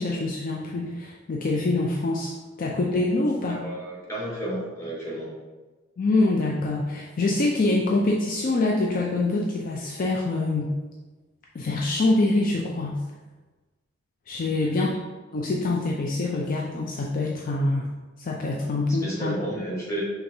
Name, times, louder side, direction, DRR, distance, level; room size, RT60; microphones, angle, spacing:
voice 1, 0.0-2.3 2.6-3.6 6.0-10.7 11.5-13.0 14.3-15.0 15.3-17.9 18.2-19.3, left 2 dB, 45° left, -2 dB, 0.4 m, -25 dB
voice 2, 3.5-5.3 14.6-14.7 18.9-20.0, right 1 dB, 15° left, -6 dB, 1.3 m, -32 dB
5.6 x 3.4 x 2.7 m, 1.2 s
head